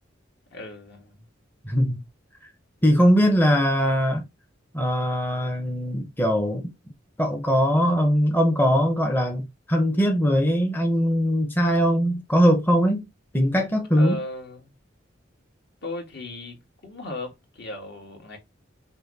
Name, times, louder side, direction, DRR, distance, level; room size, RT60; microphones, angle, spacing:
voice 1, 0.5-1.3 14.0-14.7 15.8-18.4, left 1 dB, 60° left, 1.6 m, -36 dB
voice 2, 1.6-2.0 2.8-4.2 4.7-6.7 7.2-13.0 13.3-14.2, equal, 10° left, 0.7 m, -21 dB
5.5 x 2.1 x 3.9 m
head